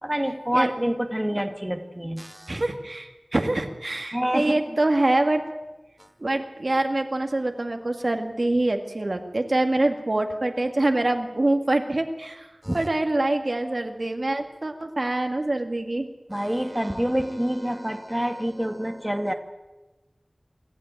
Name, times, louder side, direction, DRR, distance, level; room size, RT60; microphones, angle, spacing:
voice 1, 0.0-2.6 4.1-4.6 12.6-12.9 16.3-19.3, equal, 10° right, 5 dB, 1.9 m, -27 dB
voice 2, 2.5-5.4 6.2-12.5 12.7-16.1, right 2 dB, 55° right, 5 dB, 2.0 m, -25 dB
27.0 x 13.0 x 9.1 m, 1.1 s
wide cardioid pair, 55°, 0 cm